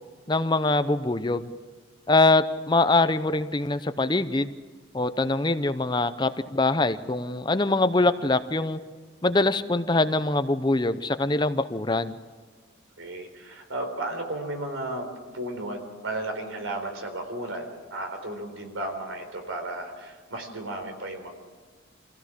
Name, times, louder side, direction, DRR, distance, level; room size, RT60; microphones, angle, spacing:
voice 1, 0.3-1.5 2.1-4.5 4.9-8.8 9.2-12.2, left 2 dB, 20° left, 11 dB, 0.6 m, -23 dB
voice 2, 13.0-15.1 15.3-21.3, right 1 dB, 90° right, 5 dB, 4.1 m, -34 dB
24.5 x 16.0 x 7.5 m, 1.5 s
head